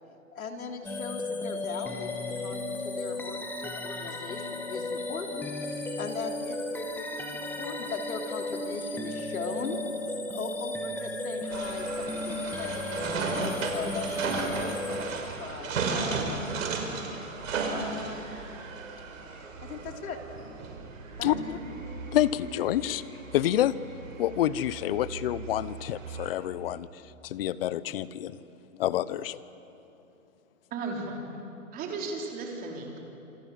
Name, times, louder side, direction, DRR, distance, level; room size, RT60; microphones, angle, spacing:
voice 1, 0.3-9.8 10.3-12.9 13.4-16.5 17.6-18.3 19.6-20.2 21.2-21.6, left 4 dB, 80° left, 3 dB, 3.7 m, -39 dB
sound 1, 0.8-15.6, left 2 dB, 5° left, 1.6 m, -35 dB
sound 2, 11.5-26.3, right 4 dB, 70° right, 5.4 m, -35 dB
voice 2, 22.1-23.7 24.2-28.4 28.7-29.4, left 12 dB, 45° left, 17 dB, 0.9 m, -28 dB
voice 3, 30.7-31.2 31.7-33.0, right 3 dB, 20° right, 1 dB, 3.9 m, -35 dB
27.5 x 26.0 x 7.6 m, 2.8 s
hypercardioid pair, 150°, 42 cm